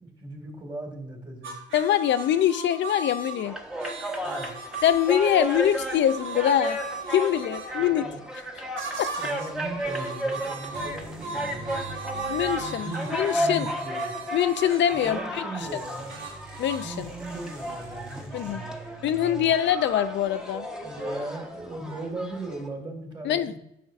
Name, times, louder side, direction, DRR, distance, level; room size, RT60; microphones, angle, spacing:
voice 1, 0.0-1.5 4.2-4.5 7.8-8.2 9.2-11.8 12.8-13.1 13.3-14.2 14.9-16.1 16.8-19.5 20.8-23.6, right 2 dB, 25° right, 2 dB, 2.2 m, -38 dB
sound 1, 1.4-7.7 8.8-9.6 9.8-15.2 16.1-16.9, right 3 dB, 75° right, 1.3 m, -37 dB
voice 2, 1.7-3.6 4.8-6.8 7.1-8.0 9.0-9.1 12.3-13.7 14.3-15.2 16.6-17.1 18.3-18.6 19.0-20.7 23.2-23.6, left 10 dB, 65° left, 10 dB, 0.4 m, -24 dB
sound 2, 3.5-22.7, equal, 5° right, 1.1 m, -34 dB
sound 3, 10.7-13.6 15.6-19.0, right 1 dB, 50° right, 2.8 m, -45 dB
9.2 x 6.0 x 2.5 m, 0.81 s
cardioid pair, 90°, 20 cm